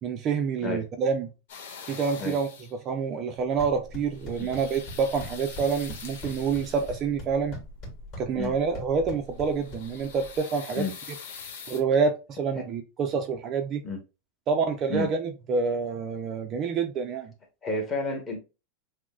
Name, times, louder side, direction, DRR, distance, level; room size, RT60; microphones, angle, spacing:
voice 1, 0.0-1.3 1.9-2.5 2.8-7.6 8.2-10.8 11.7-13.8 14.5-17.3, right 5 dB, 30° right, 0.4 m, -27 dB
sound 1, 1.5-2.8 4.0-7.2 9.2-11.8, left 6 dB, 80° left, 1.0 m, -44 dB
sound 2, 3.4-10.4, left 1 dB, 30° left, 1.7 m, -42 dB
voice 2, 17.6-18.4, left 2 dB, 15° left, 1.0 m, -30 dB
6.0 x 2.0 x 2.3 m
supercardioid pair, 160°, 0 cm